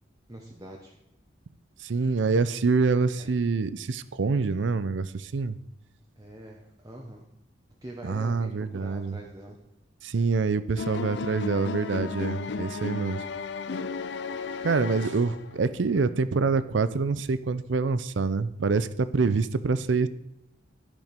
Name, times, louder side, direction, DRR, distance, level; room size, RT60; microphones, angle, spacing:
voice 1, 0.3-1.0 3.2-3.3 6.2-7.2 7.8-9.6, right 1 dB, 20° right, -1 dB, 0.9 m, -44 dB
voice 2, 1.8-5.6 8.0-9.2 10.0-13.2 14.6-20.1, right 4 dB, 75° right, 15 dB, 0.5 m, -26 dB
sound 1, 10.8-15.6, left 4 dB, 65° left, 0.5 m, -34 dB
12.5 x 5.2 x 5.2 m, 0.83 s
head